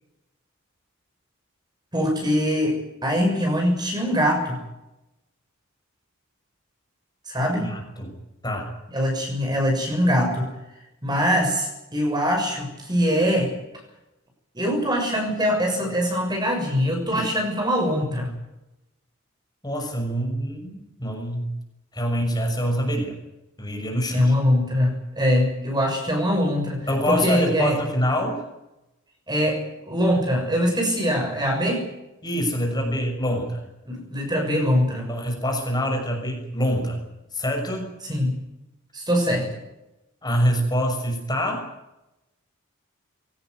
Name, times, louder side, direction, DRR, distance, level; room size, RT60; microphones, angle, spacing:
voice 1, 1.9-4.6 7.3-7.7 8.9-10.5 11.0-13.5 14.5-18.3 24.1-27.8 29.3-29.6 29.9-31.8 33.8-35.1 38.1-38.4 38.9-39.5, equal, 20° right, 2 dB, 6.7 m, -23 dB
voice 2, 7.4-8.1 8.4-8.7 17.1-17.3 19.6-21.5 21.9-23.2 23.6-24.3 26.9-28.4 32.2-33.6 35.1-37.0 37.3-37.9 40.2-41.7, equal, 20° left, 2 dB, 6.5 m, -25 dB
23.0 x 18.0 x 9.4 m, 0.92 s
head